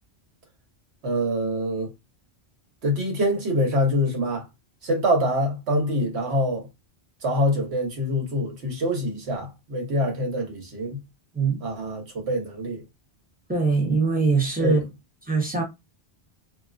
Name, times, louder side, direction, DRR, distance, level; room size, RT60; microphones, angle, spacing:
voice 1, 1.0-1.9 2.8-4.4 4.8-6.7 7.2-11.0 11.6-12.8 14.6-14.8, equal, 80° right, 1.3 m, -25 dB
voice 2, 13.5-14.9 15.3-15.6, right 4 dB, 10° right, 0.7 m, -22 dB
3.1 x 2.6 x 2.5 m
omnidirectional pair, 1.1 m